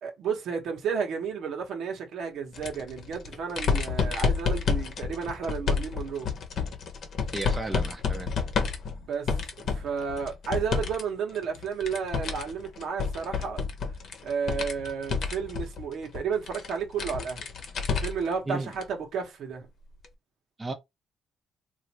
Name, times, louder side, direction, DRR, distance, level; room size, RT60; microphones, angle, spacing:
voice 1, 0.0-6.3 8.9-9.3 9.6-13.6 14.2-17.5 18.0-19.7, right 6 dB, 75° right, 1.1 m, -32 dB
sound 1, 2.5-11.0 11.3-18.3 18.7-18.8 20.0-20.1, left 5 dB, 65° left, 0.8 m, -30 dB
voice 2, 7.3-8.3 18.5-18.7 20.6-20.7, right 2 dB, 20° right, 0.6 m, -33 dB
3.1 x 2.5 x 2.9 m
cardioid pair, 90°, 0 cm